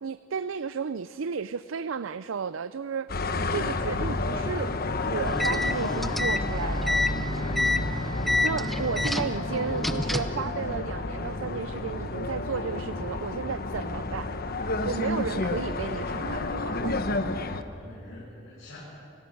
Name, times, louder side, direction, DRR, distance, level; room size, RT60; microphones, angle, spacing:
voice 1, 0.0-3.1 3.5-4.7 5.1-7.0 8.4-14.3 14.8-17.2, right 5 dB, 75° right, 14 dB, 0.5 m, -33 dB
sound 1, 3.1-17.6, left 2 dB, 50° left, 1.2 m, -30 dB
sound 2, 5.3-10.4, left 1 dB, ahead, 0.8 m, -29 dB
voice 2, 8.5-9.7 17.8-18.8, left 1 dB, 85° left, -8 dB, 7.9 m, -44 dB
29.5 x 17.5 x 7.9 m, 2.7 s
head